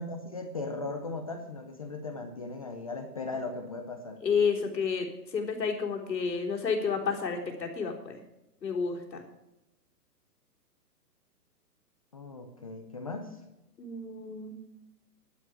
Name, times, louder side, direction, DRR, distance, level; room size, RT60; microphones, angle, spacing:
voice 1, 0.0-4.2 12.1-13.4, left 3 dB, 20° left, 6 dB, 0.7 m, -38 dB
voice 2, 4.2-8.2 8.6-9.2 13.8-14.5, left 5 dB, 90° left, 2 dB, 3.9 m, -30 dB
11.5 x 7.6 x 9.6 m, 0.91 s
hypercardioid pair, 170°, 49 cm